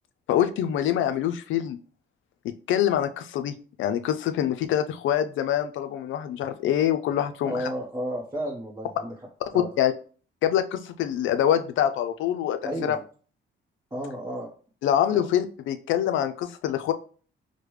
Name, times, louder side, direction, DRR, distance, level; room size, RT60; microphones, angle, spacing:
voice 1, 0.3-1.8 2.7-3.5 3.8-7.7 9.8-9.9 10.4-13.0 14.8-16.9, left 10 dB, 75° left, 9 dB, 0.4 m, -25 dB
voice 2, 7.4-9.1 9.5-9.7 12.6-13.0 13.9-14.5 15.1-15.3, equal, 15° right, -3 dB, 0.8 m, -32 dB
4.8 x 2.2 x 3.1 m, 0.41 s
cardioid pair, 90°, 20 cm